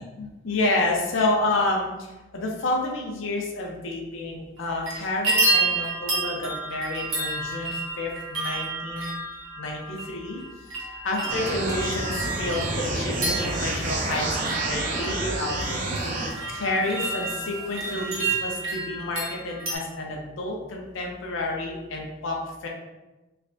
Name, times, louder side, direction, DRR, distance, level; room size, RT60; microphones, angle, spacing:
voice 1, 0.0-1.9 2.3-9.1 9.6-10.4 10.8-16.2 16.5-22.4 22.6-22.7, left 2 dB, 75° left, 0 dB, 0.6 m, -29 dB
sound 1, 4.6-4.9 5.2-19.7, right 2 dB, 90° right, 1.0 m, -30 dB
sound 2, 11.2-18.6, equal, 20° left, 0.5 m, -44 dB
sound 3, 11.3-16.3, right 2 dB, 40° right, 0.5 m, -29 dB
3.2 x 3.2 x 2.6 m, 1.1 s
head